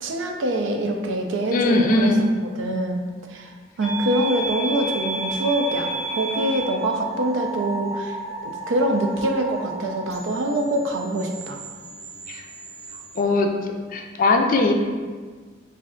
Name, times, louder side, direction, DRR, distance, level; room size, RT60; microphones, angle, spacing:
voice 1, 0.0-2.1 2.6-3.0 3.3-8.2 8.4-11.6, right 1 dB, 80° right, 2 dB, 0.5 m, -24 dB
voice 2, 1.5-2.2 12.3-12.4 13.2-13.5 13.9-14.7, left 2 dB, 45° left, 4 dB, 0.4 m, -19 dB
sound 1, 3.8-13.2, right 2 dB, 35° right, 0.6 m, -32 dB
3.2 x 2.6 x 3.7 m, 1.5 s
head